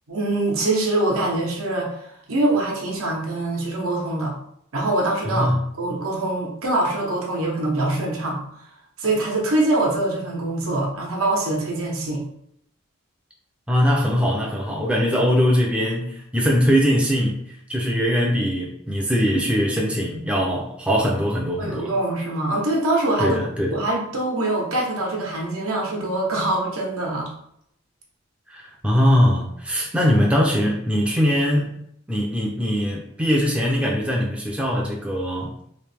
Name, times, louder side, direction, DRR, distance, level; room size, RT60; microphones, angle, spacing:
voice 1, 0.1-2.0 2.3-4.3 4.7-5.5 5.8-8.4 9.0-12.2 21.6-23.4 23.7-27.3, right 2 dB, 80° right, -2 dB, 1.0 m, -23 dB
voice 2, 5.2-5.6 13.7-17.4 17.7-21.9 23.2-23.8 28.5-31.8 32.1-35.5, equal, 5° right, -2 dB, 0.4 m, -21 dB
3.2 x 2.7 x 3.3 m, 0.71 s
head